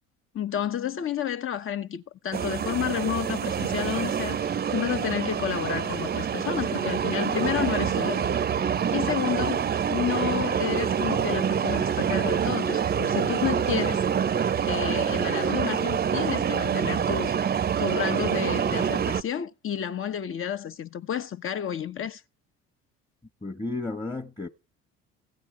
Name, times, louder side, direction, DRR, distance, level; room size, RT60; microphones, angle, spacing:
voice 1, 0.3-8.4 8.9-14.0 14.6-22.2, left 9 dB, 45° left, 1.0 m, -31 dB
sound 1, 2.3-19.2, right 8 dB, 30° right, 0.7 m, -26 dB
voice 2, 23.4-24.5, left 2 dB, 15° left, 1.1 m, -32 dB
15.5 x 8.9 x 4.9 m
hypercardioid pair, 65°, 30 cm